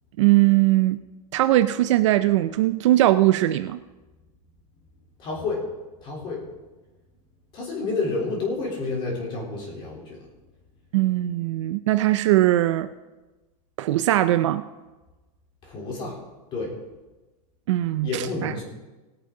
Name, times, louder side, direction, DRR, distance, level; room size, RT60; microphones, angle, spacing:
voice 1, 0.2-1.0 1.3-3.8 10.9-12.9 13.8-14.6 17.7-18.5, right 15 dB, 50° right, 11 dB, 0.5 m, -20 dB
voice 2, 5.2-5.7 6.0-6.4 7.5-10.2 15.6-16.2 16.5-16.7 18.0-18.6, left 3 dB, 25° left, -2 dB, 3.4 m, -29 dB
19.0 x 8.9 x 3.8 m, 1.1 s
supercardioid pair, 175°, 19 cm